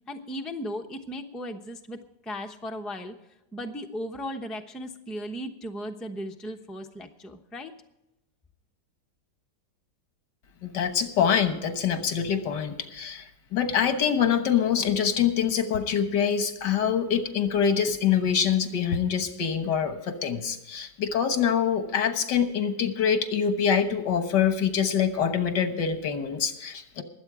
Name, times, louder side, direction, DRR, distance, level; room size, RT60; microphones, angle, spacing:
voice 1, 0.1-2.0 2.2-3.1 3.5-7.7, equal, ahead, 4 dB, 0.6 m, -36 dB
voice 2, 10.6-27.0, left 7 dB, 80° left, 9 dB, 1.9 m, -25 dB
22.0 x 8.1 x 4.8 m, 0.91 s
omnidirectional pair, 1.8 m